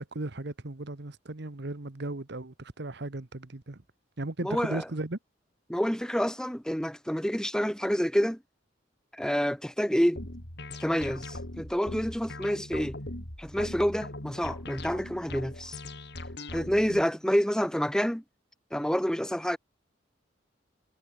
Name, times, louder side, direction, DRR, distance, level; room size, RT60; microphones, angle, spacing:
voice 1, 0.0-3.8 4.2-5.2 16.9-17.0, right 2 dB, 60° right, 1.3 m, -36 dB
voice 2, 4.4-4.8 5.7-8.4 9.1-10.2 10.8-13.0 13.4-15.8 16.5-18.2 18.7-19.6, equal, 5° left, 1.9 m, -28 dB
sound 1, 10.2-17.0, left 1 dB, 60° left, 7.3 m, -40 dB
head